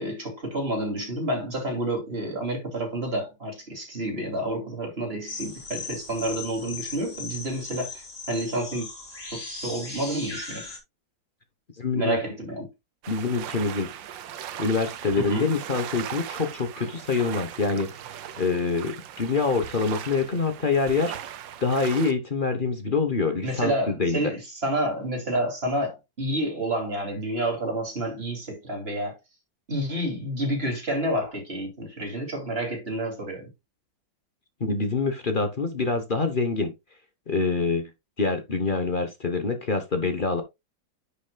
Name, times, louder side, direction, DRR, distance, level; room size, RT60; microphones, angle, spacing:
voice 1, 0.0-8.9 9.3-10.7 11.9-12.7 15.2-15.5 23.4-29.2 29.7-33.5, right 1 dB, 30° right, 3.1 m, -29 dB
sound 1, 5.3-10.8, left 3 dB, 55° left, 3.8 m, -38 dB
voice 2, 11.8-12.2 13.1-13.9 14.6-17.9 18.4-21.2 21.6-24.2 34.6-36.7 37.3-37.9 38.2-40.4, left 4 dB, 35° left, 1.0 m, -25 dB
sound 2, 13.0-22.1, right 10 dB, 80° right, 1.5 m, -38 dB
10.5 x 6.8 x 2.3 m
omnidirectional pair, 2.0 m